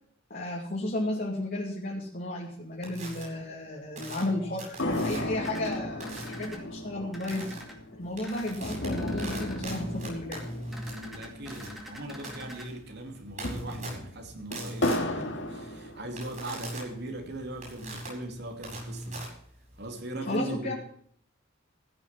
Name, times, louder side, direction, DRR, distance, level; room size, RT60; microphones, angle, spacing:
voice 1, 0.3-7.4 8.0-10.4 20.3-20.7, left 1 dB, 45° left, 2.6 m, -33 dB
sound 1, 2.8-3.2 4.0-5.4 6.0-6.5 7.3-7.6 8.0-19.9, right 1 dB, 40° right, 7.7 m, -41 dB
sound 2, 4.8-12.4 12.6-12.7 13.2-16.6 17.1-18.1, left 1 dB, 65° left, 2.4 m, -35 dB
sound 3, 5.4-6.6 7.1-7.7 8.2-8.6 8.9-9.6 10.7-12.7, equal, ahead, 2.3 m, -45 dB
voice 2, 10.9-19.2 19.8-20.7, right 1 dB, 55° right, 2.9 m, -39 dB
15.5 x 7.2 x 7.4 m
head